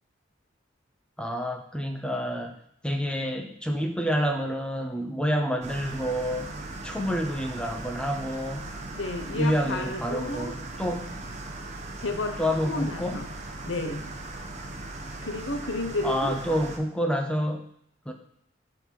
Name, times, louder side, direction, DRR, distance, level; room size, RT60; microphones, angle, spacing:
voice 1, 1.2-2.5 2.8-6.5 6.8-8.7 9.3-11.2 12.4-13.2 16.0-17.6 18.1-18.2, equal, 5° left, 4 dB, 0.7 m, -28 dB
sound 1, 5.6-16.8, right 2 dB, 35° right, 1.0 m, -38 dB
voice 2, 9.0-10.5 12.0-13.3 13.7-14.1 15.2-16.4, left 2 dB, 85° left, 6 dB, 1.0 m, -32 dB
12.0 x 4.2 x 4.7 m, 0.69 s
head